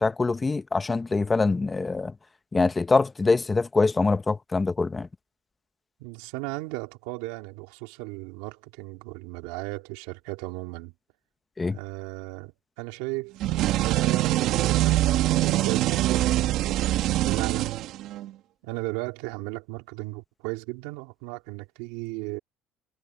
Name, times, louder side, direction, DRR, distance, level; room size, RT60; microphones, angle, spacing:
voice 1, 0.0-2.1 2.5-5.1 11.6-11.8, left 3 dB, 20° left, 1.2 m, -24 dB
voice 2, 6.0-10.9 11.7-15.1 15.4-16.3 17.2-17.9 18.6-22.4, right 22 dB, 85° right, 2.8 m, -35 dB
sound 1, 13.4-18.3, right 15 dB, 65° right, 1.7 m, -24 dB
supercardioid pair, 100°, 0 cm